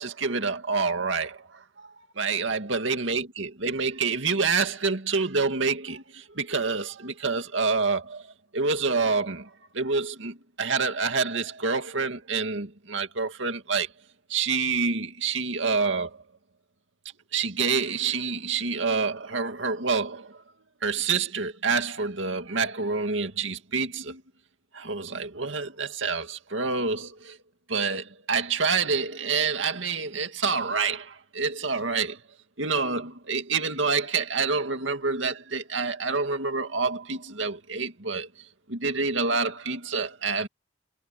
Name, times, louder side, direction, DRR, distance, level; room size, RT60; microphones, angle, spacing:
voice 1, 0.0-1.9 2.2-8.3 8.5-13.9 14.3-16.2 17.3-20.4 20.8-24.2 24.7-27.4 27.7-32.2 32.6-38.3 38.7-40.5, right 4 dB, 80° right, 2.3 m, -27 dB
head